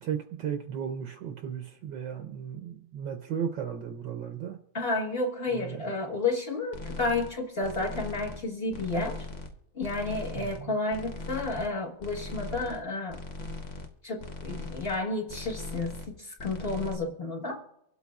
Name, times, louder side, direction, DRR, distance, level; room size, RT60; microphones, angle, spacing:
voice 1, 0.0-4.6 5.5-5.9 10.3-10.8, right 8 dB, 65° right, 5 dB, 1.3 m, -35 dB
voice 2, 4.7-9.2 9.7-13.2 14.0-17.6, left 2 dB, 30° left, -1 dB, 1.3 m, -31 dB
sound 1, 6.7-7.3 7.6-8.4 8.7-9.5 9.8-10.6 10.9-11.7 12.0-12.8 13.1-13.9 14.2-15.0 15.3-16.1 16.4-16.9, left 3 dB, 85° left, 0.4 m, -40 dB
24.5 x 8.3 x 2.4 m, 0.77 s
omnidirectional pair, 2.3 m